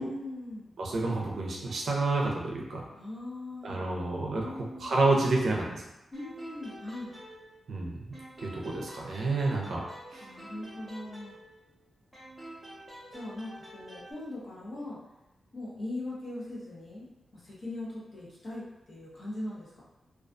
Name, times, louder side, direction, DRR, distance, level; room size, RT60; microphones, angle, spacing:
voice 1, 0.0-0.7 2.9-3.8 4.4-4.9 6.1-7.1 10.2-11.3 13.1-15.0 15.5-19.8, left 1 dB, 35° left, -6 dB, 0.7 m, -40 dB
voice 2, 0.8-2.8 3.6-5.9 7.7-8.0 8.4-9.8 10.1-10.3, right 2 dB, 65° right, -2 dB, 0.5 m, -29 dB
sound 1, 6.1-7.8 8.1-11.7 12.1-14.1, right 1 dB, 10° right, 0.6 m, -48 dB
2.3 x 2.2 x 2.5 m, 0.96 s
wide cardioid pair, 175°, 0 cm